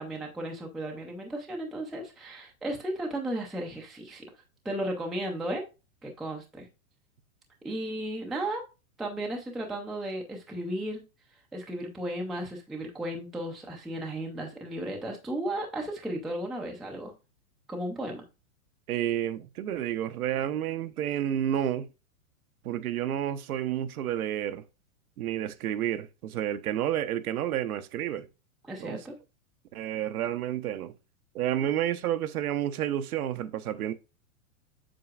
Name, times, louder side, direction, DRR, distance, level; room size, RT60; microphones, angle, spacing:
voice 1, 0.0-4.3 4.6-5.6 6.0-6.7 7.6-8.6 9.0-11.0 11.5-17.1 17.7-18.2 28.6-29.2, right 1 dB, ahead, 0.3 m, -34 dB
voice 2, 18.9-21.9 22.6-24.6 25.2-28.3 28.8-29.0 29.7-30.9 31.3-33.9, right 11 dB, 85° right, 0.9 m, -30 dB
7.6 x 5.7 x 2.4 m
hypercardioid pair, 145°, 43 cm